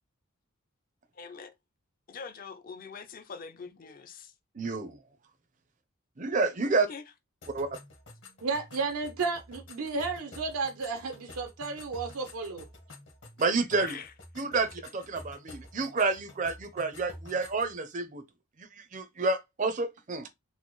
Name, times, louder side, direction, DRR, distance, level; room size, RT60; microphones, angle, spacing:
voice 1, 1.1-1.5 2.1-4.3 6.9-7.0 13.8-14.1, left 5 dB, 40° left, 0.5 m, -43 dB
voice 2, 4.5-5.0 6.2-6.9 7.5-7.7 13.4-14.0 14.4-18.2 18.6-20.3, right 3 dB, 35° right, 0.5 m, -29 dB
sound 1, 7.4-17.7, left 2 dB, 55° left, 1.1 m, -50 dB
voice 3, 8.4-12.6, right 4 dB, 80° right, 0.6 m, -33 dB
4.1 x 2.0 x 3.0 m
head